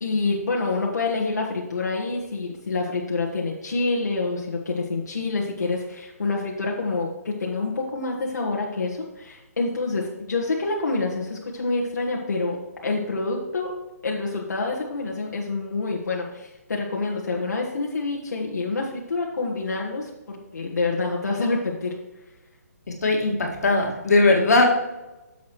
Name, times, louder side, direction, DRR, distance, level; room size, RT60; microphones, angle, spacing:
voice 1, 0.0-13.7 14.0-21.9, left 3 dB, 85° left, -3 dB, 1.6 m, -27 dB
voice 2, 22.9-24.6, left 2 dB, 70° left, 0 dB, 2.0 m, -19 dB
11.0 x 7.1 x 3.2 m, 1.0 s
hypercardioid pair, 175°, 9 cm